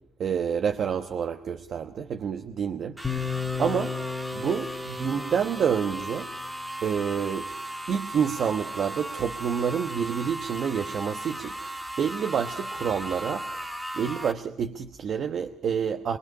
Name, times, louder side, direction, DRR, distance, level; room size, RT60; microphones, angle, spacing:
voice 1, 0.2-3.0 3.6-4.0 4.3-6.3 6.8-7.5 7.9-11.6 12.0-13.5 13.9-16.2, right 7 dB, 60° right, 6 dB, 1.1 m, -28 dB
sound 1, 3.0-7.1, left 5 dB, 10° left, 2.3 m, -34 dB
sound 2, 3.0-14.3, right 1 dB, 10° right, 1.6 m, -37 dB
23.0 x 21.5 x 5.5 m, 0.76 s
cardioid pair, 90°, 0 cm